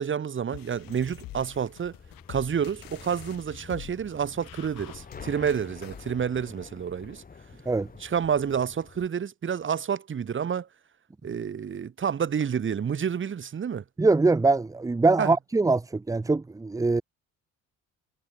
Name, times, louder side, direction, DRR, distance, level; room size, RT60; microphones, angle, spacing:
voice 1, 0.0-1.9 2.3-7.2 8.0-10.7 11.2-13.8 15.2-15.3, right 7 dB, 35° right, 2.0 m, -29 dB
sound 1, 0.5-6.1, left 15 dB, 80° left, 7.8 m, -46 dB
sound 2, 0.7-9.1, left 5 dB, 25° left, 2.6 m, -48 dB
voice 2, 14.0-17.0, right 3 dB, 10° right, 0.6 m, -23 dB
cardioid pair, 120°, 34 cm